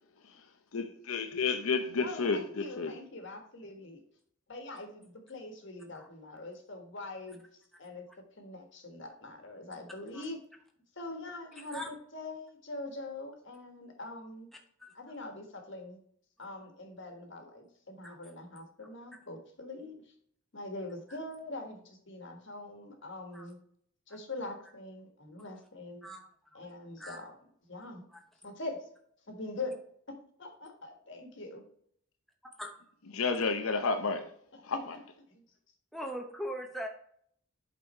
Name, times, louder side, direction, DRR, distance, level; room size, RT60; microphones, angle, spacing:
voice 1, 0.7-2.9 33.1-34.3 34.6-35.0, left 4 dB, 75° left, 0.7 m, -31 dB
voice 2, 2.0-4.0 4.5-7.5 7.8-8.1 8.3-10.4 10.9-14.5 14.9-16.0 16.4-20.1 20.5-23.6 24.1-26.1 26.5-27.3 27.7-28.0 28.4-28.9 29.3-29.7 30.1-31.6 34.5-34.6 35.3-35.4, left 2 dB, 55° left, 1.6 m, -43 dB
voice 3, 27.0-27.3 28.1-28.2 32.6-32.7 35.9-36.9, equal, ahead, 0.8 m, -40 dB
8.3 x 4.2 x 4.3 m
head